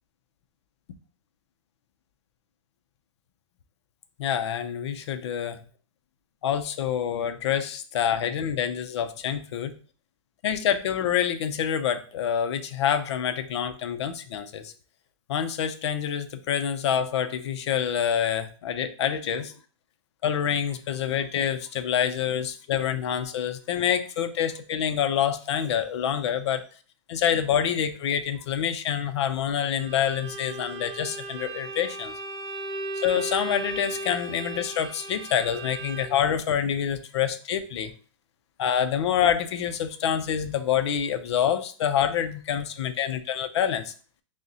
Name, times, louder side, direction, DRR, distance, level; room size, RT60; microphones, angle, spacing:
voice 1, 4.2-5.6 6.4-9.7 10.4-14.7 15.3-19.5 20.2-26.6 27.1-32.1 33.0-37.9 38.6-43.9, left 9 dB, 55° left, 10 dB, 0.5 m, -27 dB
Bowed string instrument, 29.8-36.3, right 2 dB, 25° right, 1.0 m, -36 dB
6.1 x 2.1 x 2.7 m, 0.41 s
supercardioid pair, 170°, 17 cm